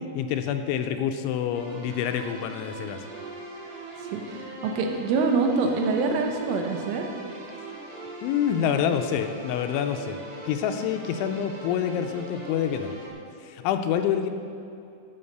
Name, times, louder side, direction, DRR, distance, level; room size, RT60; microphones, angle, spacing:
voice 1, 0.2-3.1 8.2-12.9 13.4-14.3, left 8 dB, 85° left, 7 dB, 2.9 m, -27 dB
sound 1, 1.5-13.1, right 1 dB, 50° right, 2.8 m, -41 dB
voice 2, 4.1-7.0, right 4 dB, 85° right, 3 dB, 3.6 m, -25 dB
11.0 x 7.9 x 6.7 m, 2.5 s
omnidirectional pair, 5.6 m